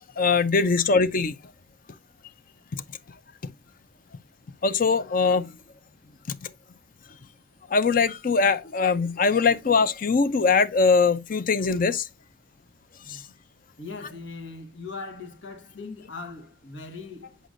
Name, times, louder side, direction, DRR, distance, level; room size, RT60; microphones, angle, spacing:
voice 1, 0.2-1.3 4.6-5.5 7.7-12.1 13.1-13.2, left 4 dB, 50° left, 0.6 m, -21 dB
voice 2, 13.8-17.4, left 3 dB, 85° left, 1.4 m, -40 dB
7.8 x 5.0 x 2.5 m
head